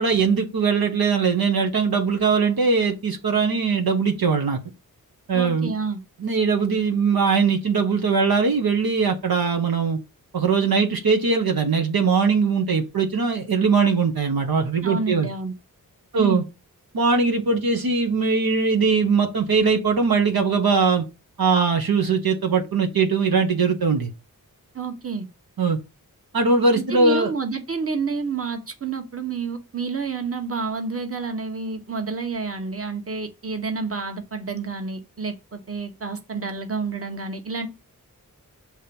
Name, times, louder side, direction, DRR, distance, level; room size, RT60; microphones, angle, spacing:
voice 1, 0.0-4.6 5.3-5.7 6.2-10.0 10.3-15.3 16.1-16.4 16.9-21.0 21.4-24.1 25.6-25.8 26.3-27.3, right 5 dB, 75° right, 1.1 m, -21 dB
voice 2, 5.3-6.0 14.8-15.5 16.1-16.4 24.7-25.3 26.7-37.7, right 4 dB, 40° right, 1.3 m, -29 dB
6.3 x 3.0 x 5.3 m
cardioid pair, 45°, 37 cm